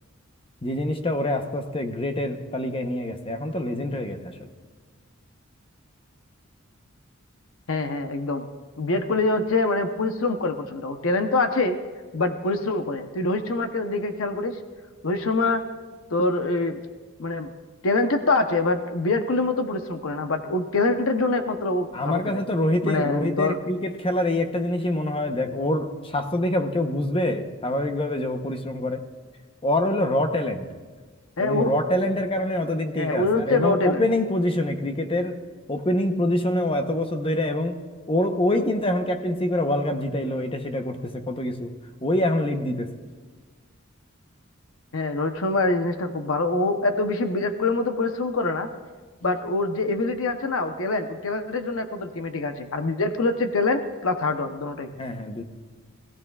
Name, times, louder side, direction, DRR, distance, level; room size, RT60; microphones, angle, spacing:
voice 1, 0.6-4.3 21.9-29.0 29.6-30.7 31.4-35.4 35.7-37.8 38.1-41.8 42.0-42.9 55.0-55.4, left 1 dB, 25° left, 6 dB, 0.9 m, -25 dB
voice 2, 7.7-8.5 8.8-11.8 12.1-14.6 15.0-15.6 16.1-16.8 17.2-17.5 17.8-22.4 22.8-23.6 31.4-31.7 33.0-34.0 44.9-48.7 49.2-54.9, left 2 dB, 70° left, 7 dB, 0.8 m, -25 dB
21.0 x 14.5 x 2.4 m, 1.4 s
head